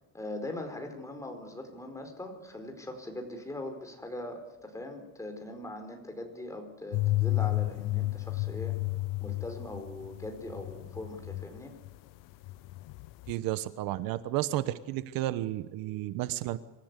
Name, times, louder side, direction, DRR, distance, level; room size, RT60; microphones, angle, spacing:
voice 1, 0.1-8.8 9.2-11.7, left 1 dB, 10° left, 4 dB, 4.6 m, -41 dB
sound 1, 6.9-12.0 12.2-13.3, left 19 dB, 65° left, 0.6 m, -32 dB
voice 2, 13.3-16.6, right 15 dB, 70° right, 14 dB, 1.1 m, -32 dB
26.5 x 14.5 x 8.3 m, 1.1 s
cardioid pair, 140°, 36 cm